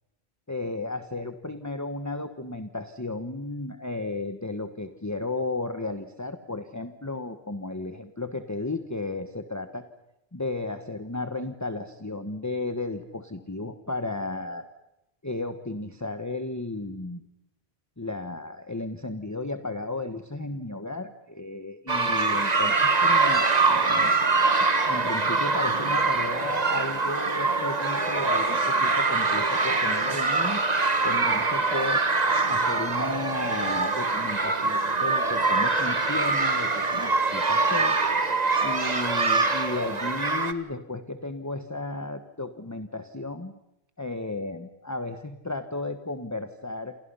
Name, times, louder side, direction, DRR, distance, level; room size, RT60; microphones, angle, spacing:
voice 1, 0.5-9.8 10.3-14.7 15.2-17.2 18.0-23.4 23.7-24.1 24.8-30.6 31.0-32.0 32.5-38.0 38.6-43.5 44.0-46.9, left 2 dB, 15° left, 8 dB, 1.3 m, -34 dB
sound 1, 21.9-40.5, right 3 dB, 40° right, 1.6 m, -24 dB
29.0 x 28.0 x 5.6 m, 0.90 s
omnidirectional pair, 1.1 m